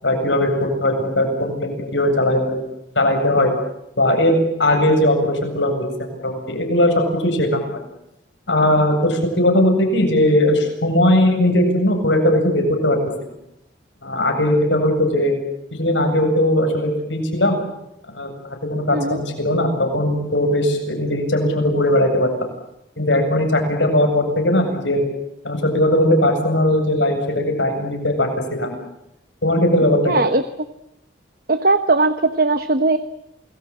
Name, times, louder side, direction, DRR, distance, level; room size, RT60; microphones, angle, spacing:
voice 1, 0.0-2.6 3.0-3.5 4.0-7.8 8.5-13.0 14.0-15.3 15.7-17.6 18.1-18.3 18.7-22.3 23.0-25.0 25.4-28.9 29.4-30.2, left 1 dB, 80° left, 4 dB, 7.9 m, -19 dB
voice 2, 30.1-30.4 31.5-33.0, right 3 dB, 50° right, 10 dB, 1.1 m, -18 dB
28.5 x 21.0 x 8.7 m, 0.84 s
head